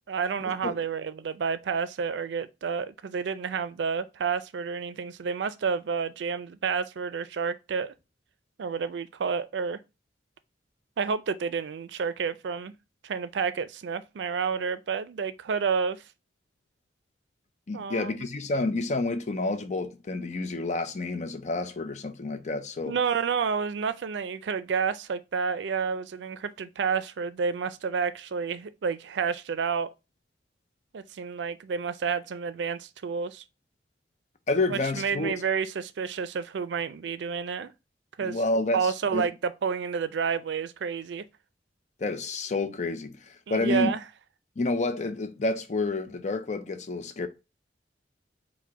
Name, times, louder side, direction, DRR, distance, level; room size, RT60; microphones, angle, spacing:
voice 1, 0.1-7.9 8.6-9.8 11.0-12.7 13.0-16.0 17.7-18.1 22.9-29.9 30.9-33.4 34.7-37.7 38.2-38.4 38.7-41.2 43.5-44.0, right 6 dB, 85° right, 0.4 m, -30 dB
voice 2, 17.7-23.0 34.5-35.3 38.2-39.3 42.0-43.9 44.6-47.3, left 2 dB, 40° left, 0.5 m, -29 dB
4.7 x 2.1 x 4.6 m
head